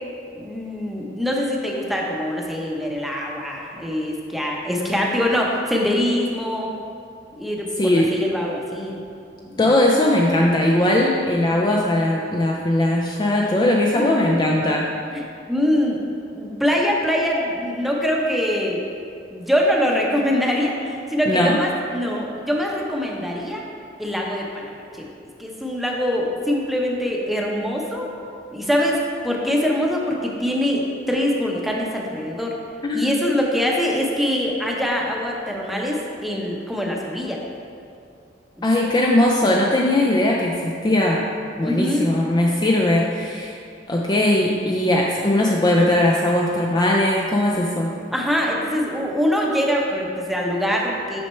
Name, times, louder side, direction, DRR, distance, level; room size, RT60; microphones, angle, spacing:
voice 1, 0.4-6.7 7.4-9.0 9.4-9.5 13.9-14.1 15.1-16.0 16.3-18.8 19.3-23.6 24.0-24.7 25.0-25.1 25.4-28.1 28.5-32.5 32.9-37.4 41.6-42.1 48.1-51.2, equal, ahead, -2 dB, 0.8 m, -23 dB
voice 2, 7.8-8.1 9.6-14.8 21.3-21.6 32.8-33.1 38.6-41.2 41.6-43.6 43.9-47.9, left 1 dB, 25° left, -2 dB, 0.4 m, -19 dB
6.2 x 5.7 x 4.3 m, 2.4 s
head